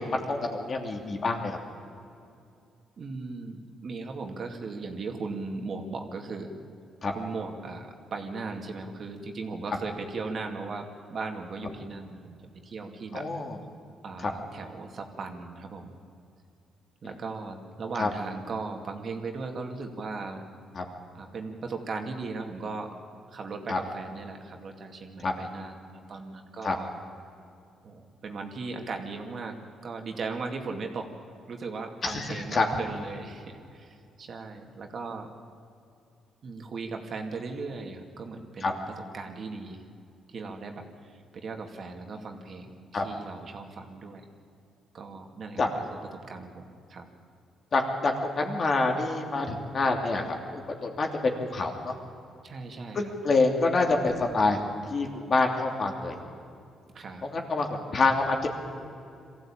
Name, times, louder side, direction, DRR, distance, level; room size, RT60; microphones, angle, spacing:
voice 1, 0.0-1.6 7.0-7.1 13.1-13.6 14.2-14.3 18.0-18.1 20.7-20.8 23.7-23.8 25.2-25.3 26.6-26.7 32.0-32.7 38.6-38.7 42.9-43.0 45.6-45.7 47.7-50.2 50.5-51.9 52.9-54.6 54.9-56.2 57.2-58.5, left 3 dB, 45° left, 2 dB, 3.0 m, -26 dB
voice 2, 3.0-6.5 7.1-12.4 12.6-13.2 14.0-16.0 17.0-20.4 21.1-22.9 23.3-26.9 27.8-29.6 29.8-31.1 31.5-35.3 36.4-38.8 39.1-39.8 40.3-44.2 44.9-45.6 45.9-46.0 46.3-46.6 46.9-47.1 52.4-53.1 56.9-57.3, right 4 dB, 50° right, 3 dB, 2.4 m, -37 dB
22.5 x 15.0 x 8.9 m, 2.5 s
cardioid pair, 90°, 0 cm